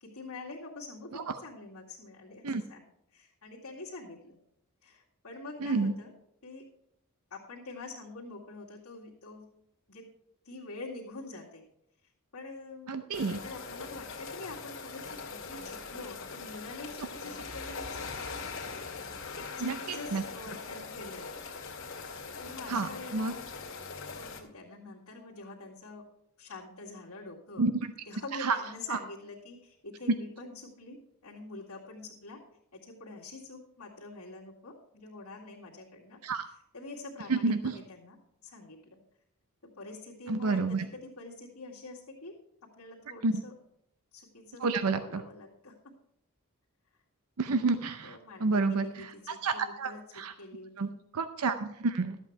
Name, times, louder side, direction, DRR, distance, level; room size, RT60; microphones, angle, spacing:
voice 1, 0.0-2.8 3.1-4.4 4.8-6.1 6.4-6.6 7.3-9.5 9.9-10.1 10.4-11.6 12.3-12.9 13.2-18.4 19.3-21.3 22.4-23.5 24.1-26.0 26.4-27.7 28.1-31.0 31.2-32.4 32.7-36.2 36.7-38.2 38.4-39.0 39.6-42.3 42.8-43.5 44.1-45.7 48.0-50.9, left 2 dB, 85° left, -7 dB, 2.2 m, -46 dB
voice 2, 5.6-5.9 12.9-13.4 19.6-20.2 22.7-23.3 27.6-27.7 28.3-28.6 28.9-29.0 36.2-36.4 37.3-37.8 40.3-40.9 43.2-43.4 44.6-45.2 47.4-50.3 50.8-52.2, right 4 dB, 85° right, 10 dB, 0.6 m, -30 dB
sound 1, 13.1-24.4, left 4 dB, 60° left, 2.2 m, -41 dB
13.0 x 8.2 x 4.6 m, 0.76 s
head